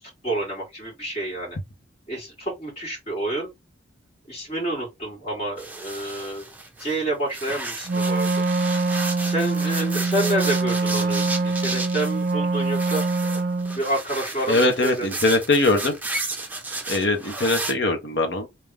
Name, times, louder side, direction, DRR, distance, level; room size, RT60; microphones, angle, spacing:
voice 1, 0.0-1.6 2.1-3.5 4.3-6.5 6.8-8.3 9.2-13.0 13.7-15.1, right 1 dB, 30° left, 2.5 m, -28 dB
sound 1, 5.6-7.0 7.3-17.7, right 3 dB, 10° right, 0.7 m, -33 dB
Wind instrument woodwind instrument, 7.9-13.8, right 3 dB, 45° right, 0.4 m, -24 dB
voice 2, 14.5-16.0 16.9-18.5, left 2 dB, 65° left, 1.2 m, -21 dB
3.6 x 3.0 x 3.4 m
head